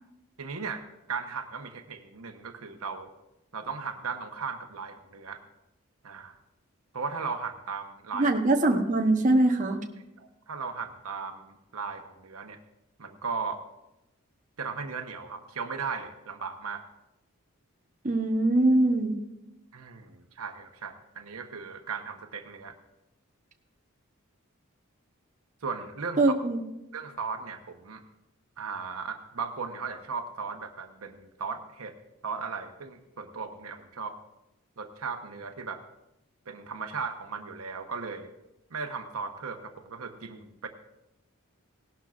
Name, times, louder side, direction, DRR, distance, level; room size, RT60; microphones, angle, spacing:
voice 1, 0.4-3.1 3.5-5.4 6.0-6.4 6.9-8.3 10.2-12.6 13.0-13.6 14.6-16.8 19.7-22.7 25.6-26.2 26.9-28.0 28.6-31.9 32.2-34.1 34.8-35.8 36.5-38.3 38.7-40.7, right 5 dB, 85° right, 6 dB, 1.0 m, -37 dB
voice 2, 8.1-9.8 18.0-19.2 26.2-26.6, right 2 dB, 35° right, 2 dB, 0.9 m, -23 dB
17.5 x 12.0 x 2.5 m, 0.91 s
head